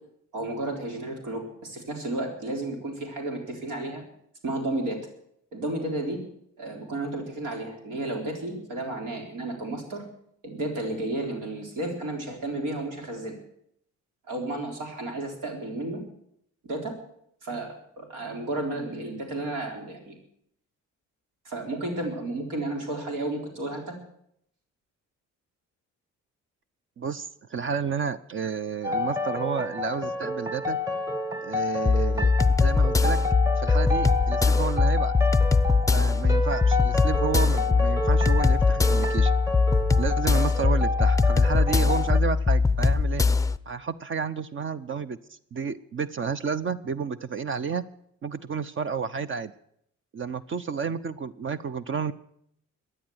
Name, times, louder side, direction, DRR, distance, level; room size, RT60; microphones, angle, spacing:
voice 1, 0.3-4.0 4.4-5.0 5.5-6.2 6.6-10.0 10.4-13.4 14.3-16.0 16.6-16.9 17.4-20.2 21.4-24.0, right 2 dB, 85° right, 2 dB, 4.0 m, -32 dB
voice 2, 27.0-30.8 31.4-32.3 32.6-33.2 33.6-35.1 35.9-39.3 40.0-43.2 43.7-45.2 45.5-47.8 48.2-49.5 50.1-52.1, right 6 dB, 40° right, 14 dB, 0.7 m, -31 dB
sound 1, 28.8-42.2, left 2 dB, 10° right, 1.2 m, -30 dB
sound 2, 31.9-43.6, left 4 dB, 10° left, 0.5 m, -21 dB
16.0 x 10.0 x 8.0 m, 0.71 s
cardioid pair, 90°, 30 cm